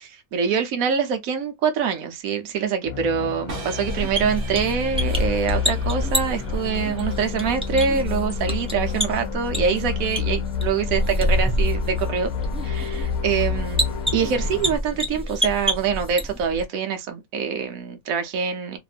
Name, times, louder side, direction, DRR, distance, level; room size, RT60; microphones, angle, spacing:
voice 1, 0.3-12.3 12.6-13.8 14.1-18.8, right 6 dB, 75° right, 1.2 m, -25 dB
sound 1, 2.9-14.8, left 8 dB, 80° left, 1.1 m, -29 dB
sound 2, 3.5-9.5, right 3 dB, 50° right, 0.8 m, -41 dB
sound 3, 3.9-16.6, right 1 dB, 10° right, 0.4 m, -28 dB
2.9 x 2.6 x 2.4 m
omnidirectional pair, 1.5 m